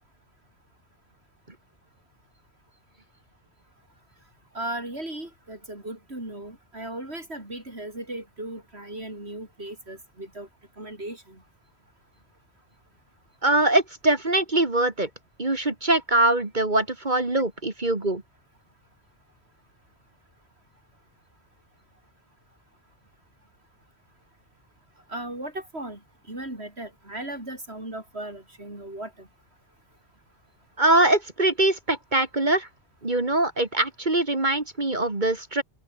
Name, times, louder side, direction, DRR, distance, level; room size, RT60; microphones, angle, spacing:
voice 1, 4.5-10.5 10.8-11.4 25.1-26.0 26.3-29.3, right 1 dB, 65° right, 7.8 m, -37 dB
voice 2, 13.4-15.1 15.4-18.2 30.8-32.7 33.0-35.6, right 2 dB, 40° right, 2.6 m, -23 dB
open air
omnidirectional pair, 1.2 m